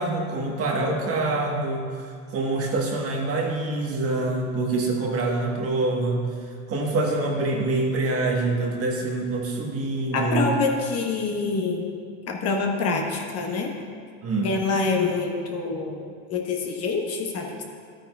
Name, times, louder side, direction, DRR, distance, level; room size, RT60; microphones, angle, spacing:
voice 1, 0.0-6.3 6.7-10.5 14.2-14.6, right 2 dB, 30° right, 0 dB, 1.3 m, -25 dB
voice 2, 10.1-11.9 12.3-13.7 14.4-17.6, left 4 dB, 35° left, 1 dB, 1.0 m, -26 dB
12.0 x 9.0 x 2.3 m, 2.1 s
supercardioid pair, 125°, 45 cm